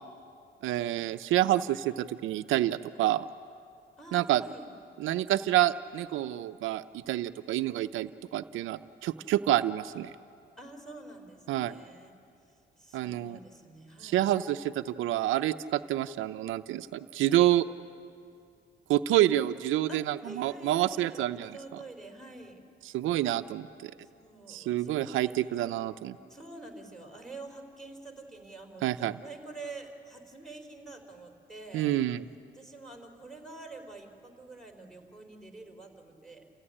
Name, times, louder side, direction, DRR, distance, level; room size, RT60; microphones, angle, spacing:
voice 1, 0.6-3.3 4.1-4.4 5.0-10.1 11.5-11.7 12.9-13.4 14.0-17.6 18.9-21.5 22.9-23.9 24.5-26.2 28.8-29.1 31.7-32.2, right 13 dB, 85° right, 10 dB, 0.6 m, -28 dB
voice 2, 4.0-4.7 10.6-12.1 12.4-14.2 19.9-22.6 24.0-25.3 26.3-31.9 32.5-36.5, right 2 dB, ahead, 2 dB, 4.4 m, -47 dB
29.0 x 15.5 x 9.9 m, 2.5 s
cardioid pair, 90°, 20 cm